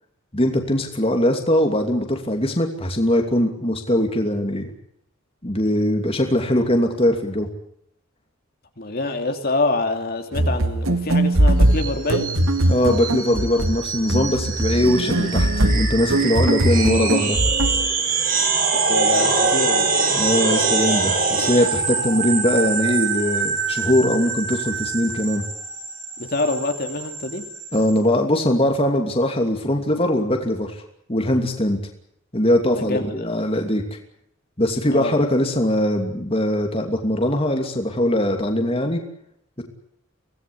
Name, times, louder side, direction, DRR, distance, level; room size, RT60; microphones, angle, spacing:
voice 1, 0.3-4.7 5.4-7.5 12.7-17.4 20.1-25.4 27.7-30.8 31.1-31.8 32.3-33.8 34.6-39.0 39.6-39.7, left 1 dB, 25° left, 3 dB, 2.8 m, -21 dB
voice 2, 8.8-12.3 18.9-19.9 26.2-27.4 32.8-33.3 34.9-35.2, left 2 dB, 45° left, 5 dB, 2.8 m, -25 dB
sound 1, 10.3-17.9, right 1 dB, 75° right, 1.9 m, -20 dB
sound 2, 11.7-27.9, right 4 dB, 40° right, 6.0 m, -24 dB
25.0 x 18.0 x 8.7 m, 0.73 s
head